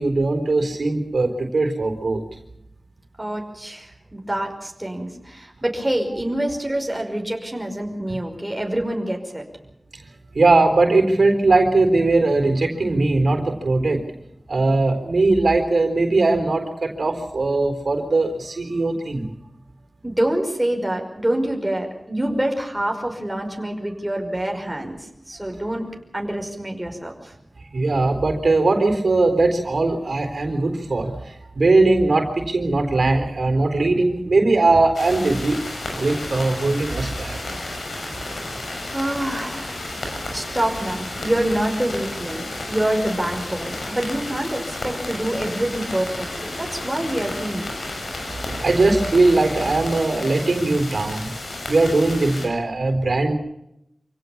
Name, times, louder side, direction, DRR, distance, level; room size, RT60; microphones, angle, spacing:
voice 1, 0.0-2.2 9.9-10.0 10.3-14.0 14.5-19.3 27.7-35.6 35.9-37.4 38.1-38.2 40.2-40.3 48.0-51.3 51.7-53.3, right 2 dB, 75° right, 6 dB, 4.0 m, -20 dB
voice 2, 3.2-9.4 20.0-25.0 25.3-25.9 26.1-27.3 38.9-39.8 40.3-47.8 52.4-52.5, right 1 dB, 15° right, 2 dB, 5.5 m, -26 dB
sound 1, 34.9-52.5, left 2 dB, 90° left, 6.7 m, -32 dB
27.0 x 17.0 x 7.2 m, 0.81 s
wide cardioid pair, 70°, 0 cm